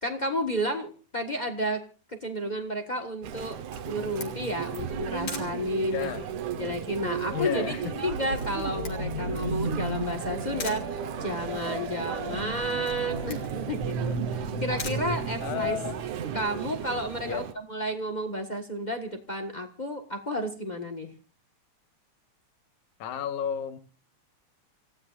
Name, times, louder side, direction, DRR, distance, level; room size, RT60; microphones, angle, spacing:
voice 1, 0.0-1.8 2.1-3.6 3.9-6.1 6.6-15.8 16.3-17.4 17.7-21.1, equal, 35° left, 0.7 m, -31 dB
Chatter, 3.2-17.5, right 9 dB, 85° right, 2.4 m, -36 dB
Camera, 3.4-15.9, left 4 dB, 55° left, 3.4 m, -45 dB
voice 2, 5.9-6.3 7.3-7.9 12.3-12.6 15.4-16.0 17.2-17.5 23.0-23.8, left 8 dB, 80° left, 2.5 m, -32 dB
sound 1, 8.1-16.5, right 2 dB, 50° right, 2.7 m, -35 dB
28.5 x 16.0 x 2.5 m
omnidirectional pair, 3.4 m